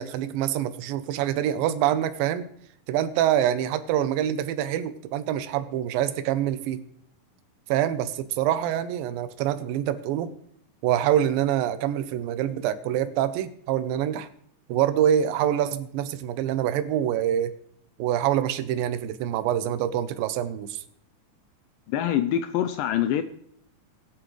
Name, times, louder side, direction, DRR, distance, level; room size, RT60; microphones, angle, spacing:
voice 1, 0.0-2.5 2.9-6.8 7.7-10.3 10.8-14.3 14.7-17.5 18.0-20.8, right 11 dB, 80° right, 11 dB, 2.4 m, -25 dB
voice 2, 21.9-23.2, left 10 dB, 80° left, 10 dB, 2.0 m, -24 dB
21.0 x 8.9 x 3.2 m, 0.66 s
omnidirectional pair, 4.3 m